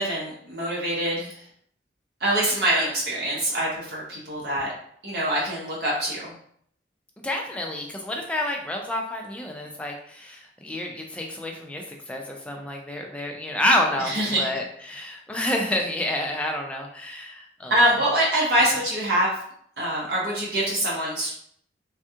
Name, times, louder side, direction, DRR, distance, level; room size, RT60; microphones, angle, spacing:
voice 1, 0.0-1.3 2.2-4.7 5.0-6.3 14.0-14.5 17.7-19.3 19.8-21.3, right 1 dB, 60° right, -5 dB, 0.7 m, -24 dB
voice 2, 7.2-17.8 18.6-18.7, left 1 dB, 5° left, 1 dB, 0.4 m, -29 dB
3.4 x 2.3 x 2.7 m, 0.64 s
head